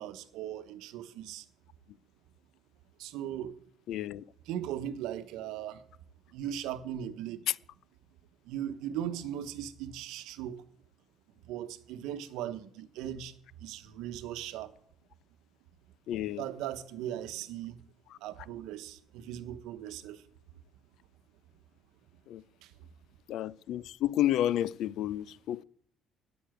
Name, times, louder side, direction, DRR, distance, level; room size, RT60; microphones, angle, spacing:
voice 1, 0.0-1.5 3.0-3.6 4.5-5.8 6.3-7.5 8.4-10.6 11.4-14.7 16.4-17.8 18.2-20.2 22.6-22.7, right 11 dB, 85° right, 0.9 m, -38 dB
voice 2, 3.9-4.2 7.5-7.6 16.1-16.4 22.3-22.4 23.3-25.6, left 12 dB, 65° left, 0.4 m, -30 dB
9.6 x 7.0 x 9.0 m
cardioid pair, 155°, 0 cm